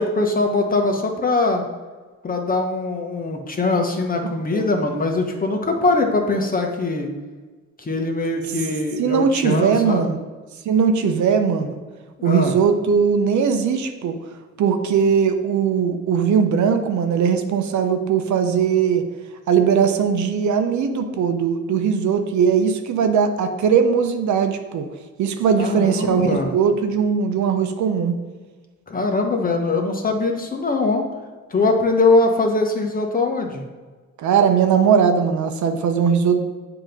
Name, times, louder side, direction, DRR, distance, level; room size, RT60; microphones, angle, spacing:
voice 1, 0.0-1.6 2.2-7.1 7.8-10.1 12.2-12.5 25.5-26.5 28.9-31.0 31.5-33.6, left 3 dB, 30° left, 3 dB, 1.0 m, -21 dB
voice 2, 9.0-10.2 10.6-11.7 12.2-14.2 14.6-19.0 19.5-24.9 25.2-28.1 34.2-36.4, right 6 dB, 70° right, 6 dB, 0.8 m, -19 dB
7.3 x 3.0 x 5.2 m, 1.3 s
cardioid pair, 90°, 30 cm